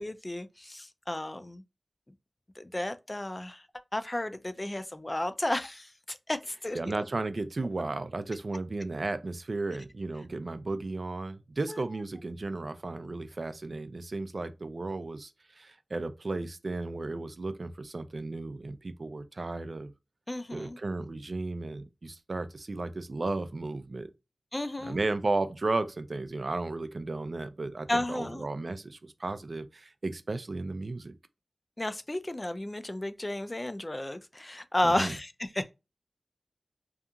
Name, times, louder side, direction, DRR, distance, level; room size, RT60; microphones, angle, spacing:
voice 1, 0.0-1.6 2.6-3.6 3.9-7.0 11.7-11.8 20.3-20.8 24.5-25.0 27.9-28.5 31.8-35.7, left 1 dB, 30° left, 0.4 m, -33 dB
voice 2, 6.7-19.9 20.5-24.1 24.8-31.2 34.8-35.1, right 2 dB, 60° right, 0.3 m, -34 dB
2.8 x 2.4 x 2.3 m
cardioid pair, 45°, 0 cm